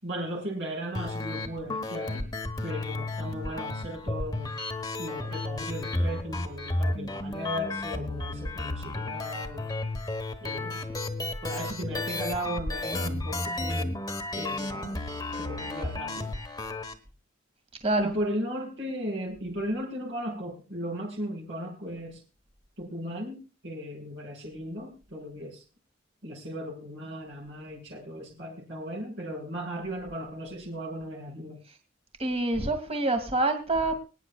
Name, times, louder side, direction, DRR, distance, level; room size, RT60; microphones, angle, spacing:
voice 1, 0.0-2.3 2.6-4.6 5.0-9.7 10.4-10.8 11.4-14.0 14.3-15.0 15.4-16.3 18.0-22.2 22.8-25.6 26.2-31.6, equal, 65° right, -2 dB, 5.8 m, -36 dB
sound 1, 0.9-16.9, left 2 dB, 20° left, 1.2 m, -33 dB
voice 2, 17.8-18.1 32.2-34.0, right 2 dB, 30° right, 7 dB, 2.0 m, -26 dB
25.5 x 9.6 x 2.3 m, 0.32 s
head